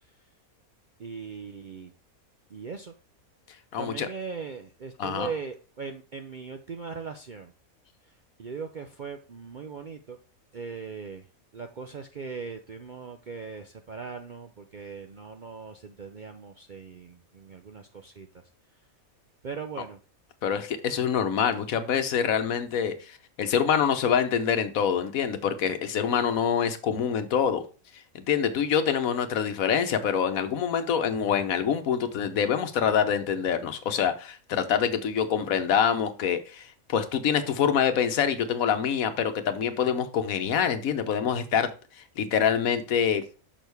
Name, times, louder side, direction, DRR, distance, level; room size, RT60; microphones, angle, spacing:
voice 1, 1.0-1.9 2.5-2.9 3.8-7.5 8.4-10.2 10.5-11.2 11.5-18.3 19.4-20.0, right 5 dB, 55° right, 0.5 m, -39 dB
voice 2, 3.7-4.1 5.0-5.3 20.4-27.6 28.1-41.7 42.2-43.2, left 7 dB, 75° left, 1.3 m, -25 dB
6.3 x 6.1 x 3.4 m
omnidirectional pair, 1.5 m